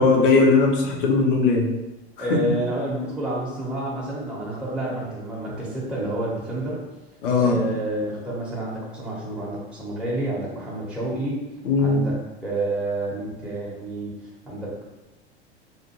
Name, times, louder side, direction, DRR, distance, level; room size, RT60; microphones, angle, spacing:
voice 1, 0.0-1.7 2.3-2.4 7.2-7.6 11.6-12.0, left 4 dB, 55° left, 0 dB, 0.7 m, -19 dB
voice 2, 2.2-6.8 7.4-11.4 11.8-12.2 12.4-14.1 14.5-14.9, right 1 dB, 5° right, -6 dB, 0.8 m, -29 dB
2.6 x 2.5 x 2.8 m, 1.0 s
figure-of-eight pair, 80°, 33 cm